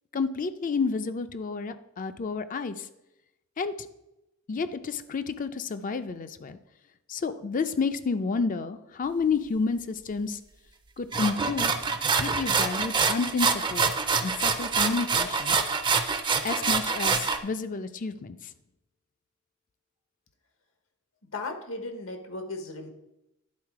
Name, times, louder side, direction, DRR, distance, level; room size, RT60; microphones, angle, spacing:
voice 1, 0.1-2.9 3.6-3.9 4.5-6.6 7.1-10.4 11.0-11.8 12.2-13.9 14.2-15.6 16.4-18.4, left 4 dB, 40° left, 11 dB, 0.4 m, -30 dB
sound 1, 11.1-17.4, right 5 dB, 25° right, 0.5 m, -26 dB
voice 2, 21.3-22.9, left 2 dB, 75° left, 6 dB, 1.2 m, -36 dB
10.5 x 4.0 x 4.7 m, 0.91 s
head